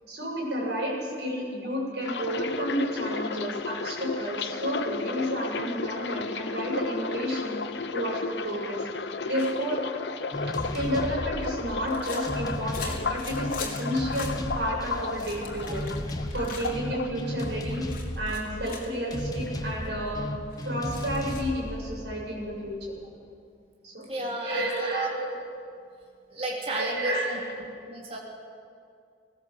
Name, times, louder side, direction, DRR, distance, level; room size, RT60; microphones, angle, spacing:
voice 1, 0.1-7.6 7.9-8.9 9.2-9.8 10.7-15.8 16.3-17.9 18.2-20.3 20.6-22.8 23.8-25.4 26.7-27.6, equal, 70° right, -3 dB, 7.7 m, -31 dB
sound 1, 2.0-18.0 18.3-19.2 19.5-19.8, left 4 dB, 80° left, 0.9 m, -34 dB
sound 2, 9.4-9.5 10.9-13.8 14.1-14.4 14.9-16.7 17.2-17.4 17.8-18.9 19.4-19.5 19.7-19.9 20.5-21.5, left 5 dB, 50° left, 3.7 m, -42 dB
sound 3, 10.3-23.1, equal, 20° left, 1.4 m, -35 dB
voice 2, 24.1-24.7 24.9-25.1 26.3-27.1 27.9-28.2, right 2 dB, 35° right, -2 dB, 3.1 m, -31 dB
19.0 x 18.0 x 8.2 m, 2.3 s
head